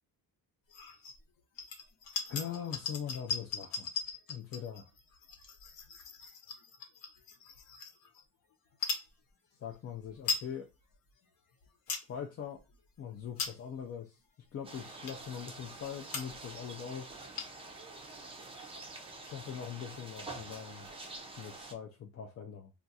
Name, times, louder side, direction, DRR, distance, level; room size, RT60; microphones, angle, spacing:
sound 1, 0.7-1.2 1.6-8.2 8.7-9.1 9.7-9.8 10.0-10.5 10.9-11.0 11.5-12.1 12.6-12.8 13.2-13.8 14.4-14.5 15.0-15.4 15.8-15.9 16.1-16.5 16.8-16.9 17.1-17.7, left 5 dB, 65° left, 0.9 m, -39 dB
voice 1, 2.3-3.9 4.3-4.9 9.6-10.7 12.1-12.6 13.0-14.1 14.5-17.2 19.2-20.9 21.4-22.7, left 8 dB, 40° left, 0.4 m, -42 dB
sound 2, 14.6-21.7, right 3 dB, 15° right, 0.4 m, -47 dB
2.4 x 2.3 x 4.0 m
cardioid pair, 145°, 37 cm